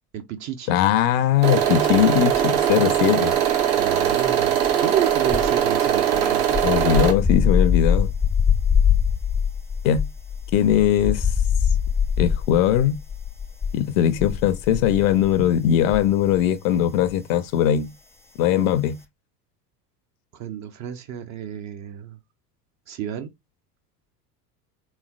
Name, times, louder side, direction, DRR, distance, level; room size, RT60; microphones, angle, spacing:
voice 1, 0.1-0.8 3.8-6.6 20.3-22.2 22.9-23.3, right 10 dB, 35° right, 0.6 m, -31 dB
voice 2, 0.7-3.4 6.6-8.1 9.8-10.1 10.5-11.3 12.2-13.0 13.7-17.9 18.4-19.0, left 10 dB, 55° left, 0.6 m, -20 dB
sound 1, 1.4-7.1, right 10 dB, 60° right, 1.4 m, -21 dB
sound 2, 1.9-2.7 2.9-16.5 16.7-17.0, left 7 dB, 5° left, 0.5 m, -24 dB
3.5 x 3.1 x 2.3 m
figure-of-eight pair, 75°, 50 cm